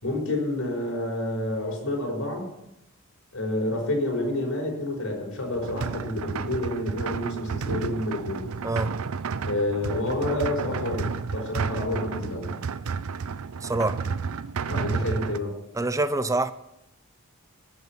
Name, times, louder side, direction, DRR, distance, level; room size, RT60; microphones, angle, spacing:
voice 1, 0.0-2.5 3.3-8.5 9.4-12.5 14.7-15.5, left 1 dB, 65° left, 5.1 m, -29 dB
sound 1, 5.5-15.4, right 5 dB, 75° right, 0.5 m, -31 dB
voice 2, 8.6-9.0 13.6-14.0 15.7-16.5, right 2 dB, 15° right, 0.6 m, -25 dB
20.0 x 7.3 x 6.1 m
head